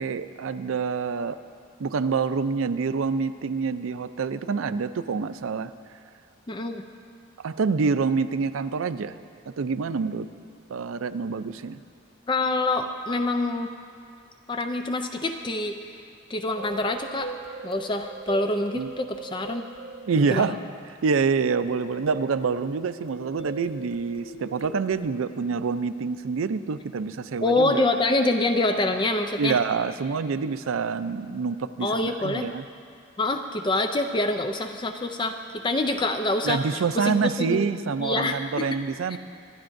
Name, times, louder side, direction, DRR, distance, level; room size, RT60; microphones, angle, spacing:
voice 1, 0.0-1.4 1.8-5.7 7.4-9.2 9.6-10.3 10.7-11.8 18.7-18.9 20.1-20.6 21.0-27.8 29.4-32.6 36.4-39.2, right 5 dB, 85° right, 12 dB, 0.4 m, -26 dB
voice 2, 6.5-6.8 12.3-13.7 14.5-15.8 16.3-17.3 17.6-19.6 20.3-20.5 27.4-29.6 31.8-32.5 33.2-37.6 38.0-38.7 39.1-39.2, left 2 dB, 25° left, 6 dB, 0.4 m, -26 dB
sound 1, 16.5-20.8 21.3-25.0, right 3 dB, 85° left, 1.1 m, -41 dB
24.5 x 11.5 x 2.6 m, 2.3 s
head